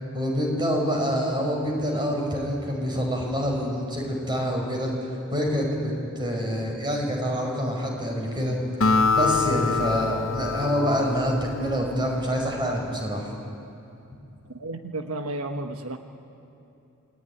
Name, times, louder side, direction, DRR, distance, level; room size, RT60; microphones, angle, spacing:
voice 1, 0.1-13.3, equal, 20° right, 1 dB, 5.7 m, -26 dB
Acoustic guitar, 8.8-12.4, left 4 dB, 65° left, 1.3 m, -25 dB
voice 2, 14.5-16.0, right 2 dB, 80° right, 6 dB, 1.3 m, -32 dB
28.5 x 21.0 x 9.9 m, 2.8 s
head